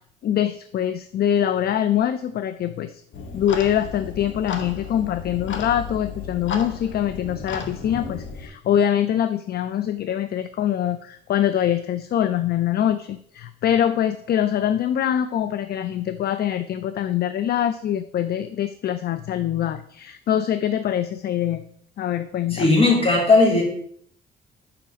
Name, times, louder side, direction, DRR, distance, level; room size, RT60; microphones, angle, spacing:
voice 1, 0.2-3.0 3.3-21.6 22.0-22.7, left 10 dB, 55° left, 12 dB, 0.4 m, -24 dB
Clock, 3.1-8.5, left 5 dB, 70° left, 1.0 m, -34 dB
voice 2, 22.5-23.6, left 3 dB, 30° left, -2 dB, 3.1 m, -16 dB
5.7 x 5.1 x 5.0 m, 0.65 s
cardioid pair, 90°, 20 cm